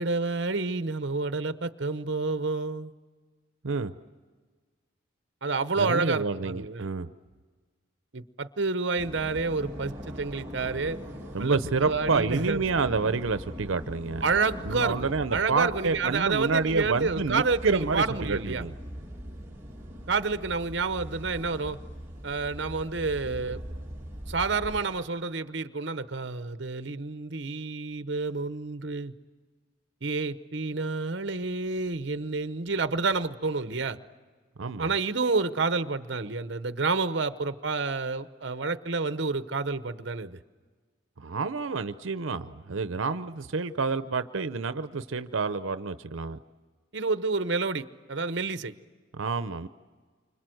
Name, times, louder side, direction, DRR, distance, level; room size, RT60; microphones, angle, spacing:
voice 1, 0.0-2.9 5.4-6.8 8.1-11.0 11.4-11.6 11.8-12.6 14.2-18.6 20.1-21.8 22.2-23.6 24.3-29.1 30.0-34.0 34.8-40.4 46.9-48.7, right 4 dB, 60° right, 12 dB, 0.9 m, -29 dB
voice 2, 5.8-7.1 11.3-14.2 14.6-18.7 34.6-35.0 41.2-46.4 49.1-49.7, right 4 dB, 90° right, 12 dB, 0.7 m, -28 dB
sound 1, 9.0-24.8, equal, 10° right, 2.4 m, -41 dB
29.0 x 25.5 x 7.8 m, 1.5 s
head